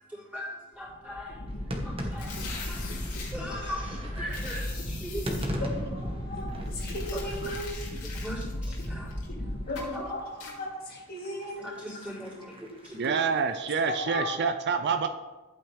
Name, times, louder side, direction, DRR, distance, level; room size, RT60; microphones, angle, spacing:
voice 1, 0.0-2.3 2.6-5.7 6.2-6.5 7.1-7.6 8.0-9.1 9.8-10.2 11.3-13.0, equal, 5° right, -7 dB, 3.8 m, -40 dB
sound 1, 0.8-10.3, left 1 dB, 65° left, 2.3 m, -36 dB
sound 2, 1.5-13.4, equal, 25° right, 1.4 m, -41 dB
sound 3, 2.1-3.3 4.3-5.5 6.7-9.3 9.8-10.0 10.4-10.6, left 5 dB, 85° left, 2.7 m, -43 dB
voice 2, 5.6-7.7 9.7-10.0 10.4-11.7 13.9-14.3, left 1 dB, 45° left, -2 dB, 2.0 m, -36 dB
voice 3, 13.0-15.1, right 5 dB, 50° right, 8 dB, 0.5 m, -27 dB
11.5 x 8.8 x 3.4 m, 1.2 s
head